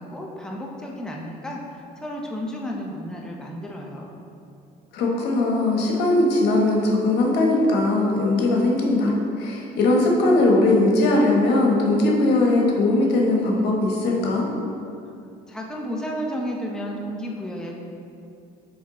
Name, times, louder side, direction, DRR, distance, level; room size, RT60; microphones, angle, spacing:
voice 1, 0.0-4.1 15.5-17.8, equal, 5° left, -2 dB, 0.8 m, -32 dB
voice 2, 4.9-14.5, left 2 dB, 80° left, -1 dB, 1.2 m, -20 dB
8.7 x 3.6 x 3.8 m, 2.5 s
cardioid pair, 110°, 17 cm